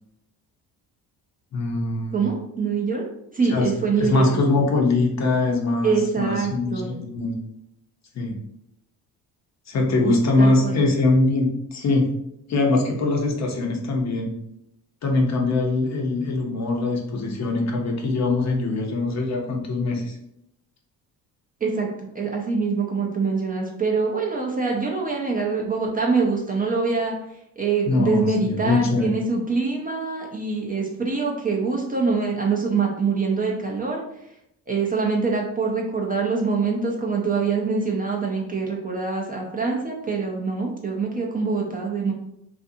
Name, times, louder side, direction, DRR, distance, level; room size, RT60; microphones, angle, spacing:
voice 1, 1.5-2.3 3.5-3.7 4.0-7.4 8.1-8.4 9.7-12.1 12.5-14.3 15.0-20.2 27.9-29.2, left 2 dB, 45° left, 1 dB, 0.6 m, -22 dB
voice 2, 2.1-3.1 3.3-4.6 5.8-7.0 10.0-10.8 21.6-27.1 27.6-34.0 34.7-42.1, right 4 dB, 25° right, -1 dB, 0.4 m, -24 dB
2.5 x 2.4 x 2.6 m, 0.78 s
cardioid pair, 90°, 39 cm